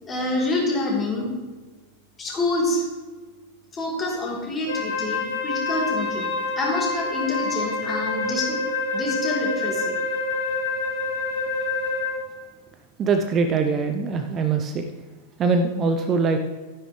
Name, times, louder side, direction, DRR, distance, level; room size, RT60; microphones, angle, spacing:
voice 1, 0.0-1.3 2.2-2.8 3.7-8.6 8.9-10.0, left 2 dB, 20° left, -3 dB, 3.5 m, -27 dB
Wind instrument woodwind instrument, 4.7-12.3, left 3 dB, 65° left, 2.0 m, -27 dB
voice 2, 13.0-14.9 15.4-16.4, right 4 dB, 30° right, 6 dB, 0.7 m, -22 dB
12.0 x 10.0 x 3.3 m, 1.3 s
figure-of-eight pair, 90°, 0 cm